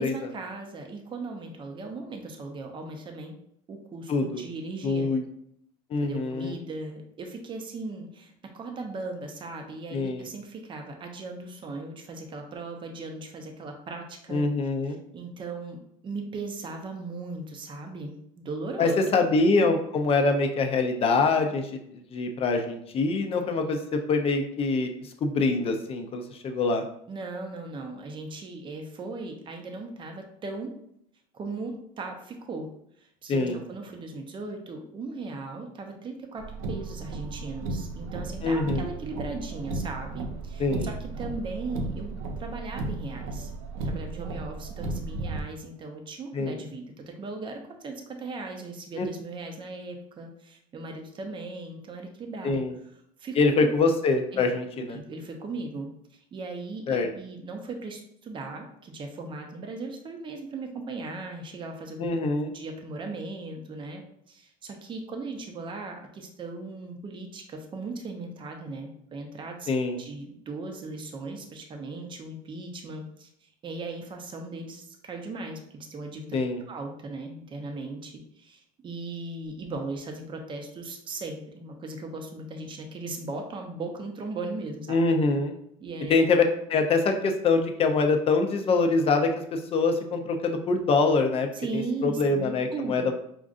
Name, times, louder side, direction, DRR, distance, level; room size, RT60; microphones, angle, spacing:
voice 1, 0.0-3.3 3.7-5.1 6.0-14.5 14.9-19.0 27.1-30.7 31.3-32.7 33.0-43.5 43.8-52.6 53.2-53.7 54.3-54.4 54.9-62.1 62.5-69.7 70.0-76.4 76.7-85.0 85.8-86.1 91.5-93.1, right 3 dB, 30° right, 3 dB, 0.7 m, -38 dB
voice 2, 4.1-4.4 4.8-5.2 5.9-6.5 9.9-10.3 14.3-15.0 18.8-26.8 33.3-33.6 38.4-38.9 40.6-40.9 46.3-46.6 48.9-49.1 52.4-52.7 53.4-55.0 56.9-57.1 62.0-62.5 69.7-70.0 76.3-76.6 84.9-85.6 86.1-91.5 91.7-93.2, left 3 dB, 35° left, 5 dB, 0.6 m, -24 dB
Car, 36.4-45.4, right 3 dB, 90° right, 0.6 m, -34 dB
5.1 x 2.4 x 2.5 m, 0.72 s
supercardioid pair, 115°, 17 cm